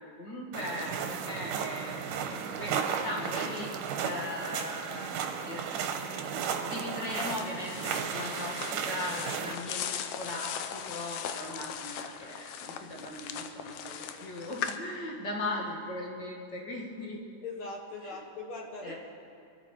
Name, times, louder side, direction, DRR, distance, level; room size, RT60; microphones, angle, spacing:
voice 1, 0.0-5.1 5.4-5.8 6.6-17.2 18.0-18.2 18.8-18.9, left 1 dB, 35° left, -2 dB, 2.3 m, -39 dB
sound 1, 0.5-9.5, right 7 dB, 80° right, 2.5 m, -34 dB
sound 2, 7.1-14.8, left 8 dB, 75° left, 1.9 m, -39 dB
voice 2, 17.4-18.9, left 3 dB, 55° left, 1 dB, 1.7 m, -40 dB
23.0 x 12.5 x 4.5 m, 2.4 s
omnidirectional pair, 3.7 m